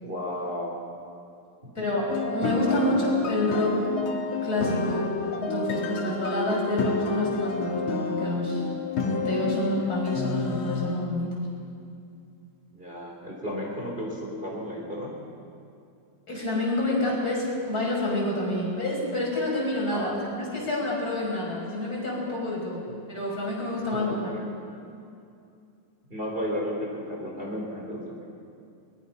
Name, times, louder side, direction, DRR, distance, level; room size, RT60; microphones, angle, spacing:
voice 1, 0.0-0.7 1.6-2.0 12.7-15.1 19.9-20.2 23.9-24.4 26.1-28.4, equal, 25° right, -2 dB, 4.0 m, -33 dB
voice 2, 1.8-3.8 4.4-5.1 5.3-8.7 9.0-11.4 16.3-20.1 20.4-22.8 23.1-24.3, left 1 dB, 45° left, -3 dB, 6.1 m, -28 dB
sound 1, 2.1-11.1, left 4 dB, 80° left, 2.4 m, -30 dB
22.5 x 20.5 x 5.8 m, 2.5 s
omnidirectional pair, 2.2 m